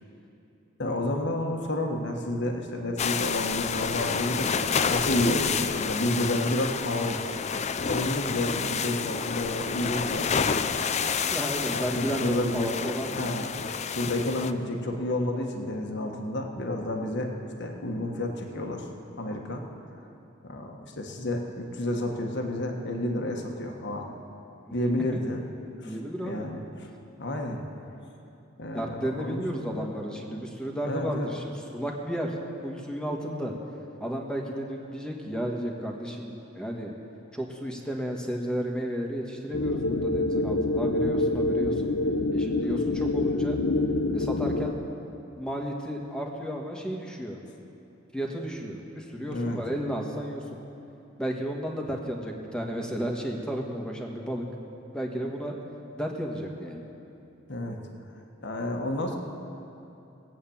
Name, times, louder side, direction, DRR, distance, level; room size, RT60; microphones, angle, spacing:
voice 1, 0.8-7.2 7.8-10.5 11.7-12.7 13.1-13.5 13.9-17.3 17.6-18.9 19.2-19.6 20.4-24.1 24.7-25.4 25.8-25.9 26.2-26.9 27.2-27.6 28.6-29.9 30.8-31.3 49.3-49.6 57.5-57.8 58.4-59.2, left 1 dB, 60° left, 2 dB, 1.5 m, -30 dB
sound 1, 3.0-14.5, left 6 dB, 35° left, 0.5 m, -29 dB
voice 2, 11.3-13.2 25.8-26.5 28.7-31.4 31.7-32.4 32.6-33.5 34.0-36.9 37.3-41.9 42.3-43.6 44.1-44.8 45.4-47.4 48.1-50.6 51.2-54.4 54.9-55.5 55.9-56.8, equal, 5° left, 0 dB, 1.5 m, -33 dB
sound 2, 39.5-44.7, left 2 dB, 80° left, 0.8 m, -26 dB
18.5 x 8.6 x 7.2 m, 2.9 s
head